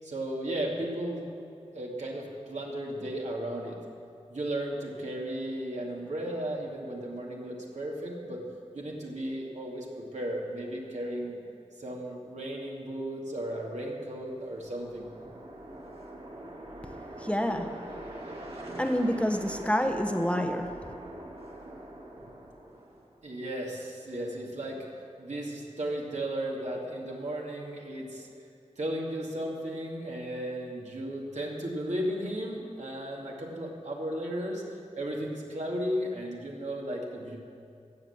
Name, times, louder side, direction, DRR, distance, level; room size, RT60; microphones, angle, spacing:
voice 1, 0.0-1.2 1.7-3.8 4.3-8.4 8.7-11.4 11.8-15.1 23.2-24.8 25.2-28.3 28.8-34.6 34.9-37.4, right 1 dB, 75° right, -2 dB, 2.4 m, -35 dB
sound 1, 14.2-23.2, right 1 dB, 50° right, 2.3 m, -43 dB
voice 2, 17.2-17.7 18.8-20.7, equal, 10° left, 5 dB, 1.0 m, -27 dB
15.0 x 8.0 x 7.2 m, 2.4 s
wide cardioid pair, 60°, 12 cm